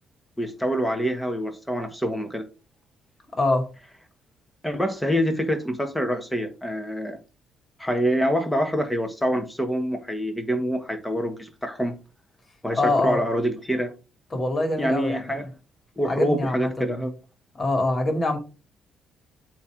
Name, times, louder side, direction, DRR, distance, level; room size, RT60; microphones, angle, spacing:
voice 1, 0.4-2.4 4.6-7.2 7.8-11.9 12.6-13.9 14.8-15.5 16.0-17.1, equal, 5° left, 1.5 m, -26 dB
voice 2, 3.4-3.7 12.8-13.2 14.3-15.5 16.0-17.1 17.5-18.4, left 2 dB, 35° left, 2.4 m, -24 dB
8.2 x 3.1 x 5.0 m
cardioid pair, 90°, 0 cm